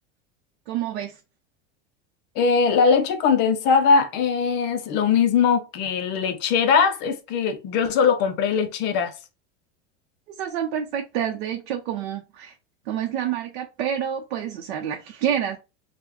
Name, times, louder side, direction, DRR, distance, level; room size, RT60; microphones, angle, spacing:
voice 1, 0.7-1.2 10.3-12.5 12.9-15.6, right 9 dB, 80° right, 0.6 m, -28 dB
voice 2, 2.4-9.1, left 6 dB, 35° left, 0.4 m, -21 dB
2.9 x 2.1 x 3.6 m
supercardioid pair, 160°, 32 cm